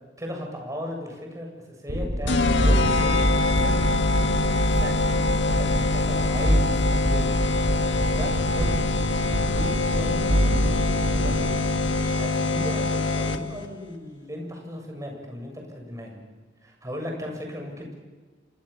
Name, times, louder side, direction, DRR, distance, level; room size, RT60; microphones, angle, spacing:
voice 1, 0.2-1.5 1.8-3.2 3.6-3.8 4.4-4.5 4.8-5.0 5.5-7.3 7.9-8.7 9.4-10.6 11.1-16.2 16.6-17.9, left 1 dB, 20° right, 1 dB, 7.8 m, -36 dB
sound 1, 1.9-12.3, equal, 85° right, 7.0 m, -26 dB
sound 2, 2.3-13.7, left 2 dB, 80° left, 1.8 m, -24 dB
29.0 x 26.0 x 7.2 m, 1.4 s
head